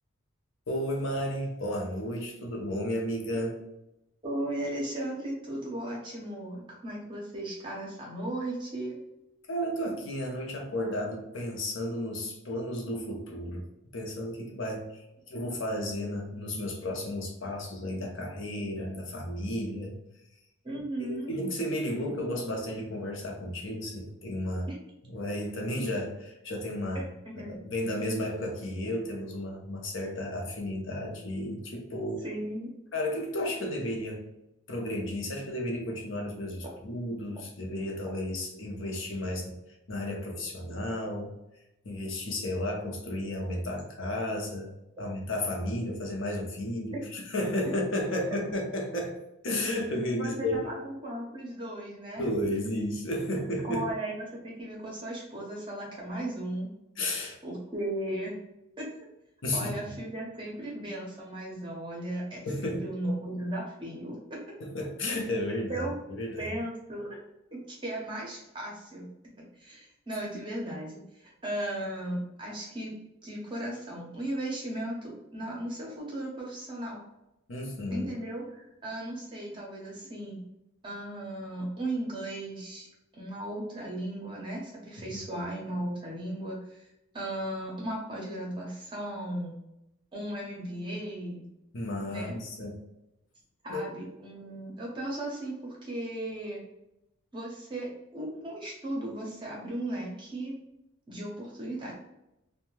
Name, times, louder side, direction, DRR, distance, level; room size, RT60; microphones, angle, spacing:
voice 1, 0.7-3.5 9.5-13.7 13.9-19.9 21.1-24.7 25.1-27.1 27.5-32.2 32.9-34.2 34.7-39.6 39.9-41.4 41.8-44.7 45.0-49.1 49.4-50.7 52.2-53.9 57.0-57.4 59.4-59.7 62.4-62.9 64.6-66.5 77.5-78.1 85.1-85.2 91.7-92.8 93.7-93.8, left 1 dB, 60° left, 1 dB, 0.6 m, -33 dB
voice 2, 4.2-9.0 20.6-21.3 24.7-24.8 26.9-27.6 32.2-32.7 45.0-45.1 48.1-48.2 50.2-52.3 53.7-56.7 57.4-58.3 58.8-58.9 59.5-64.4 65.7-65.9 66.4-67.2 67.5-69.1 69.4-72.9 73.2-77.0 77.9-80.4 80.8-82.9 83.1-86.8 87.1-89.5 90.1-91.5 92.1-92.3 93.6-96.6 97.3-100.5 101.1-101.9, right 1 dB, 20° right, -3 dB, 0.7 m, -36 dB
2.7 x 2.2 x 3.0 m, 0.89 s
head